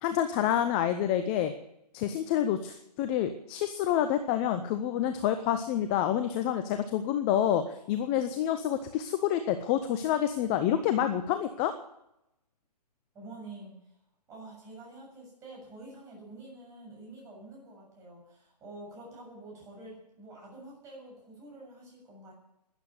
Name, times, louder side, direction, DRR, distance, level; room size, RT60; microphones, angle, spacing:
voice 1, 0.0-1.5 1.9-11.7, left 10 dB, 15° left, 9 dB, 0.6 m, -28 dB
voice 2, 13.1-14.0 14.3-22.3, right 2 dB, 15° right, -2 dB, 7.1 m, -48 dB
13.0 x 11.0 x 9.3 m, 0.82 s
hypercardioid pair, 150°, 21 cm